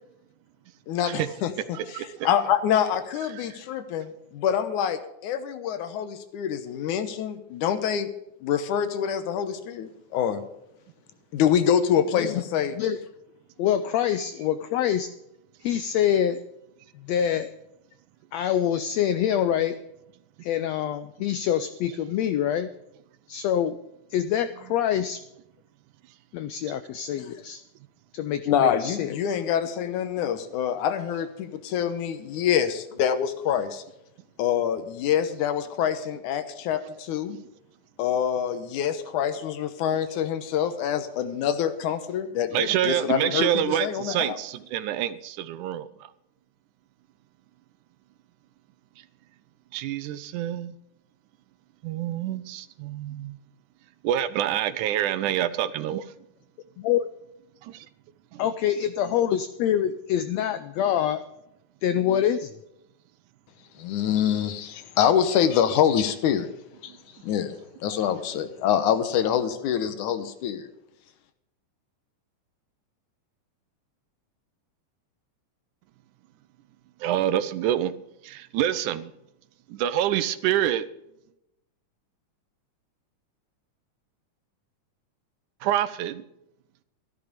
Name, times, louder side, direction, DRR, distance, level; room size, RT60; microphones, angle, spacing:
voice 1, 0.9-1.5 1.9-8.1 8.4-10.4 11.3-12.8 28.5-33.8 34.4-37.4 38.0-44.4 63.8-66.5 66.8-66.9 67.2-70.7, left 9 dB, 75° left, 2.3 m, -25 dB
voice 2, 1.7-2.3 3.3-3.6 37.3-37.4 42.5-45.9 49.7-50.7 51.8-53.4 54.0-56.1 57.6-57.9 58.3-58.4 77.0-78.0 78.2-79.1 79.7-80.8 85.6-86.2, right 11 dB, 80° right, 2.1 m, -27 dB
voice 3, 13.6-15.1 15.6-16.4 17.0-17.5 18.3-19.7 20.4-22.7 23.3-23.8 24.1-25.2 26.3-27.6 28.1-29.4 56.8-57.1 58.4-61.2 61.8-62.6, left 10 dB, 90° left, 1.5 m, -25 dB
13.5 x 12.0 x 5.1 m
omnidirectional pair, 3.7 m